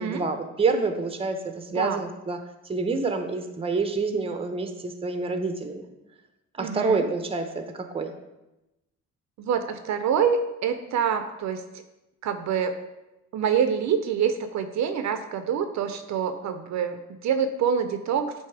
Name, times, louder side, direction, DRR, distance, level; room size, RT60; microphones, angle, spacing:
voice 1, 0.0-1.4 1.7-2.4 2.7-5.8 6.6-8.1, right 3 dB, 20° right, 6 dB, 0.7 m, -27 dB
voice 2, 6.6-7.1 9.4-11.6 12.2-12.8 13.3-18.3, right 7 dB, 65° right, 8 dB, 0.5 m, -26 dB
8.1 x 2.7 x 4.6 m, 0.97 s
cardioid pair, 90°, 30 cm